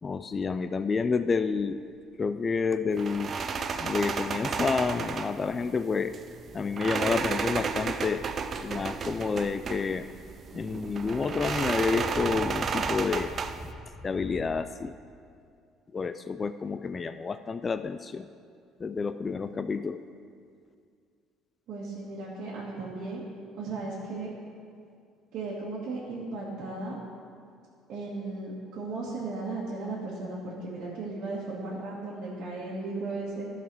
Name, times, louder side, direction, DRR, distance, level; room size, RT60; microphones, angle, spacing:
voice 1, 0.0-1.8 2.2-3.3 3.8-6.2 6.5-8.3 8.6-10.1 10.5-13.3 14.0-14.9 15.9-18.3 18.8-20.0, left 5 dB, 30° left, 11 dB, 0.3 m, -29 dB
sound 1, 1.5-1.9 2.2-2.3 3.8-4.4 5.0-5.2 5.8-5.9 6.3-6.4 7.3-7.4 7.8-7.9 9.8-9.9 10.1-14.6, equal, ahead, 1.0 m, -44 dB
sound 2, 3.0-13.7, right 5 dB, 45° right, 0.5 m, -33 dB
voice 2, 21.7-23.2 23.6-24.3 25.3-27.0 27.9-33.5, right 3 dB, 65° right, -8 dB, 1.7 m, -36 dB
12.0 x 4.9 x 6.1 m, 2.3 s
supercardioid pair, 90°, 0 cm